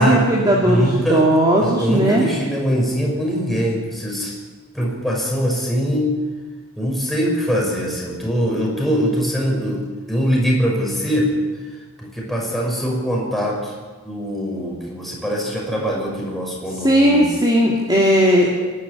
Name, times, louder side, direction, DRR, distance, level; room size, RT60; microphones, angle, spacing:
voice 1, 0.0-2.2 16.8-18.5, equal, 20° right, -3 dB, 2.7 m, -16 dB
voice 2, 0.6-1.3 1.6-4.3 4.7-6.1 6.8-11.3 12.0-13.8 14.0-17.3, equal, ahead, -3 dB, 6.1 m, -22 dB
24.5 x 12.0 x 9.8 m, 1.4 s
head